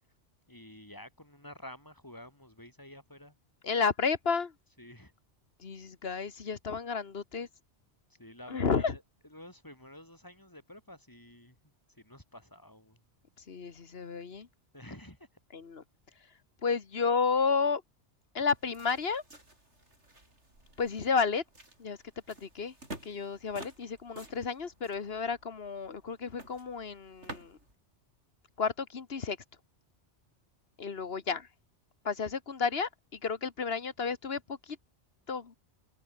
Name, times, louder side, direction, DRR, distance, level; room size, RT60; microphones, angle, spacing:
voice 1, 0.5-3.3 4.8-5.1 8.1-11.6 11.9-13.0 14.7-15.3 31.0-31.1, left 1 dB, 15° left, 5.2 m, -50 dB
voice 2, 3.6-4.5 5.6-7.5 8.5-9.0 13.5-14.5 15.5-15.8 16.6-17.8 18.3-19.2 20.8-21.4 21.8-22.0 22.3-22.7 23.0-27.6 28.6-29.4 30.8-31.5 32.0-34.8 35.3-35.5, left 5 dB, 60° left, 1.7 m, -32 dB
sound 1, 18.5-27.7, right 1 dB, 80° right, 7.7 m, -51 dB
omnidirectional pair, 1.2 m